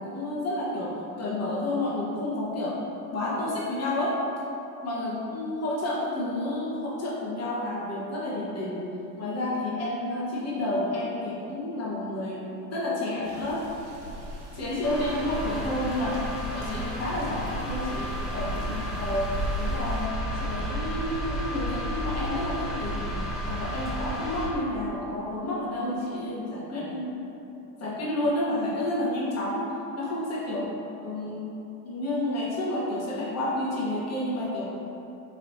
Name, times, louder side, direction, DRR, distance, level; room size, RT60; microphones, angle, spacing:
voice 1, 0.0-2.8 3.1-4.2 4.8-8.9 9.2-13.7 14.5-16.2 16.5-20.1 20.4-23.1 23.4-27.2 27.8-31.5 31.8-34.7, left 1 dB, 30° left, -6 dB, 1.0 m, -30 dB
sound 1, 13.2-20.1, equal, 50° right, 1.1 m, -46 dB
sound 2, 14.8-24.5, equal, ahead, 0.3 m, -32 dB
4.6 x 3.3 x 2.6 m, 3.0 s
hypercardioid pair, 100°, 49 cm